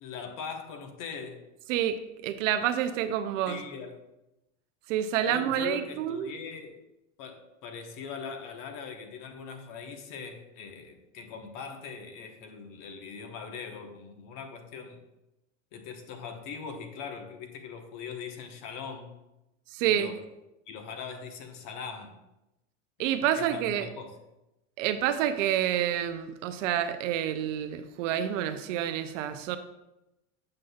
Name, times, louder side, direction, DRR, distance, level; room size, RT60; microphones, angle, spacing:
voice 1, 0.0-1.4 3.5-4.0 5.3-6.8 7.2-15.0 15.7-19.1 19.8-20.2 20.7-22.1 23.3-24.2, left 6 dB, 50° left, 5 dB, 1.1 m, -41 dB
voice 2, 2.2-3.6 4.9-6.3 19.7-20.1 23.0-23.9 24.8-29.6, right 10 dB, 70° right, 9 dB, 0.7 m, -28 dB
7.5 x 6.1 x 2.3 m, 0.92 s
hypercardioid pair, 100°, 40 cm